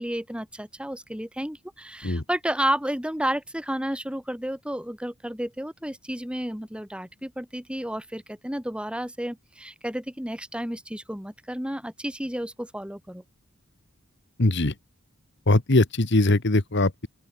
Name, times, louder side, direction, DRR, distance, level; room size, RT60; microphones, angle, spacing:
voice 1, 0.0-13.2, right 1 dB, 5° right, 4.2 m, -31 dB
voice 2, 14.4-14.7 15.5-17.1, left 2 dB, 60° left, 1.5 m, -21 dB
open air
head